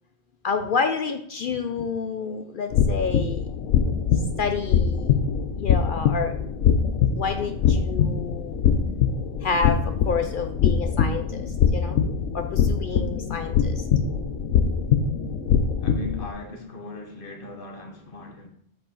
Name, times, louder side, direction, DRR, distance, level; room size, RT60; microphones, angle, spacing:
voice 1, 0.4-3.4 4.4-5.1 5.6-6.3 7.2-8.6 9.4-9.8 10.1-11.5 11.7-12.0 12.3-13.8, left 5 dB, 60° left, 0.5 m, -28 dB
sound 1, 2.7-16.3, left 7 dB, 80° left, 1.0 m, -23 dB
voice 2, 15.8-18.5, left 2 dB, 45° left, 1.2 m, -38 dB
7.6 x 4.8 x 3.9 m
omnidirectional pair, 1.3 m